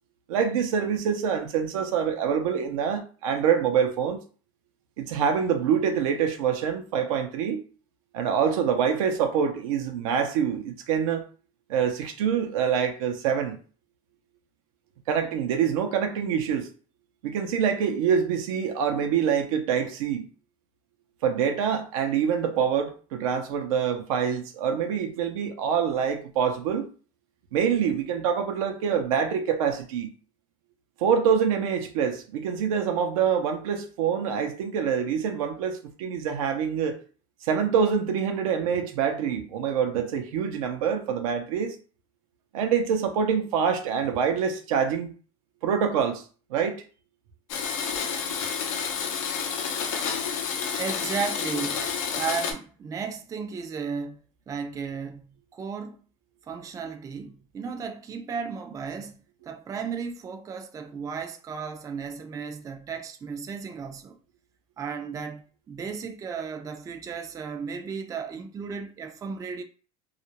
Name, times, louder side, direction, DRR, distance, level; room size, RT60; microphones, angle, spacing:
voice 1, 0.3-4.2 5.0-7.6 8.1-11.3 11.7-13.6 15.1-16.7 17.2-20.3 21.2-26.9 27.5-30.1 31.0-37.0 37.4-41.8 42.5-45.1 45.6-46.2 46.5-46.8, right 7 dB, 90° right, 0.5 m, -25 dB
Domestic sounds home sounds, 47.5-52.5, left 6 dB, 85° left, 0.6 m, -29 dB
voice 2, 50.8-51.9 52.2-54.2 54.5-56.0 56.5-64.2 64.8-69.6, right 5 dB, 20° right, 0.3 m, -34 dB
2.4 x 2.0 x 2.8 m
supercardioid pair, 110°, 17 cm